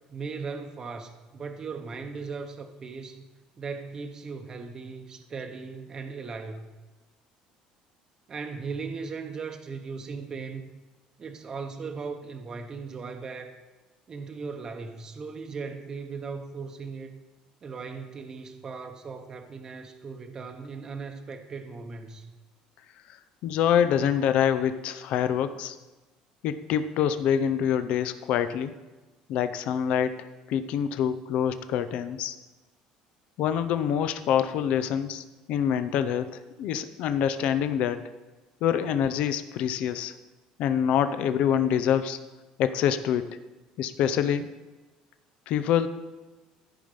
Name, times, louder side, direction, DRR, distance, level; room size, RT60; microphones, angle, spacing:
voice 1, 0.1-3.3 3.6-6.6 8.3-10.6 11.2-13.6 14.1-17.1 17.6-22.3, right 4 dB, 30° right, 5 dB, 0.8 m, -38 dB
voice 2, 23.4-25.8 26.4-28.7 29.3-32.4 33.4-38.1 38.6-40.2 40.6-42.2 42.6-43.3 43.8-44.5 45.5-45.9, left 9 dB, 60° left, 11 dB, 0.5 m, -26 dB
13.5 x 5.5 x 5.2 m, 1.2 s
cardioid pair, 140°, 2 cm